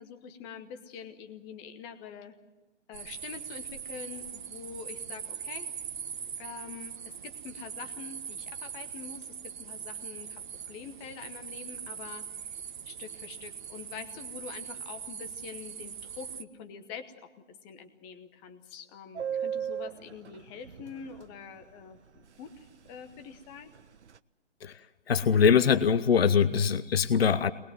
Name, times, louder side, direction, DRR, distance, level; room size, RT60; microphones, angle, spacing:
voice 1, 0.0-2.4 2.9-5.7 6.4-6.9 7.2-12.5 12.8-17.3 17.6-23.7, left 6 dB, 15° left, 9 dB, 1.0 m, -45 dB
sound 1, 2.9-16.4, right 7 dB, 40° right, 1.1 m, -41 dB
Subway metro underground, 19.2-21.3 21.6-21.7 22.0-22.2 22.5-22.9 23.2-24.2, right 8 dB, 70° right, 0.8 m, -36 dB
voice 2, 25.1-27.5, left 7 dB, 55° left, 16 dB, 0.9 m, -23 dB
23.5 x 20.0 x 7.6 m, 1.1 s
figure-of-eight pair, 140°, 36 cm